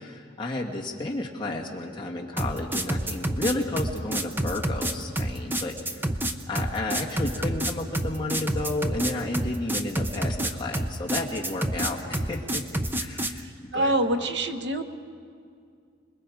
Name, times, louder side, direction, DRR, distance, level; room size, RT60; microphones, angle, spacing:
voice 1, 0.0-6.1 6.5-12.6 13.0-14.3, left 2 dB, 25° left, -2 dB, 2.0 m, -32 dB
sound 1, 2.4-13.4, right 1 dB, 10° right, 0.6 m, -28 dB
voice 2, 13.7-14.8, right 1 dB, 60° right, 6 dB, 1.2 m, -25 dB
26.5 x 21.0 x 5.0 m, 2.3 s
head